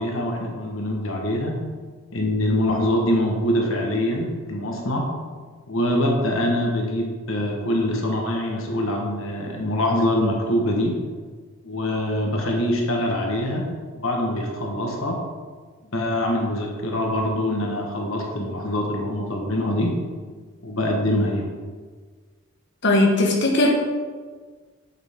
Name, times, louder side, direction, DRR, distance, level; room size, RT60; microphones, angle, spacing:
voice 1, 0.0-1.6 2.1-5.1 5.7-11.0 11.6-15.3 15.9-20.0 20.6-21.5, left 1 dB, 75° left, 0 dB, 1.3 m, -24 dB
voice 2, 22.8-23.7, left 2 dB, 55° left, 0 dB, 1.5 m, -18 dB
8.0 x 7.9 x 3.6 m, 1.5 s
head